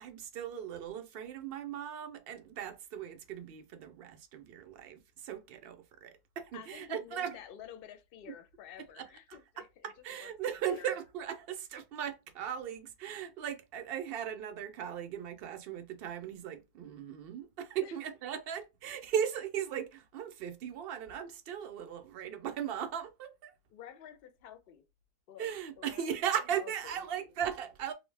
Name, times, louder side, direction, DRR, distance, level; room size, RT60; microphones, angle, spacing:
voice 1, 0.0-7.4 9.0-9.1 9.8-23.5 25.4-27.9, right 9 dB, 65° right, 0.7 m, -38 dB
voice 2, 6.5-9.9 10.2-10.3 10.6-11.0 17.8-18.0 23.7-24.8 25.3-26.2 26.5-27.0, left 9 dB, 65° left, 0.7 m, -50 dB
2.6 x 2.1 x 3.2 m
omnidirectional pair, 1.1 m